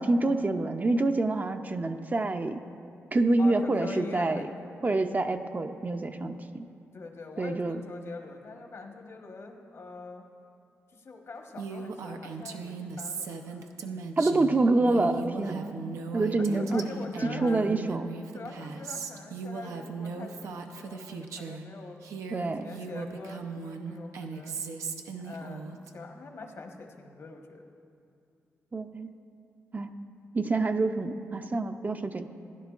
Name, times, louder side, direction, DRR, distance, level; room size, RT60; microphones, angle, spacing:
voice 1, 0.0-2.6 3.1-4.5 4.8-6.6 7.4-7.8 14.2-15.8 16.1-16.8 17.4-18.1 22.3-22.7 28.7-29.1 29.7-29.9 30.3-32.3, right 2 dB, 35° right, 7 dB, 0.5 m, -27 dB
voice 2, 3.4-4.8 6.9-10.2 10.9-13.9 16.4-17.6 18.3-22.0 22.4-24.6 25.2-27.7, left 3 dB, 60° left, 3 dB, 1.2 m, -43 dB
Female speech woman speaking, 11.6-21.7 22.0-25.9, right 5 dB, 85° right, 0.6 m, -38 dB
16.0 x 10.5 x 2.4 m, 2.5 s
cardioid pair, 60°, 5 cm